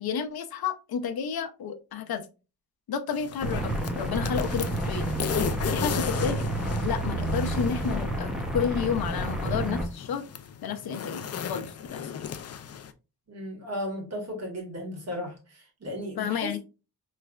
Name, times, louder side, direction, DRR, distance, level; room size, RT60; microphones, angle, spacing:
voice 1, 0.0-2.2 2.9-5.1 5.7-6.4 6.8-10.2 10.6-12.1 16.2-16.6, left 7 dB, 75° left, 0.7 m, -31 dB
sound 1, 3.1-12.9, left 8 dB, 45° left, 0.4 m, -36 dB
sound 2, 3.4-9.9, right 1 dB, ahead, 0.7 m, -29 dB
voice 2, 13.3-16.6, left 1 dB, 45° right, 1.5 m, -35 dB
4.8 x 3.2 x 2.3 m
wide cardioid pair, 165°, 37 cm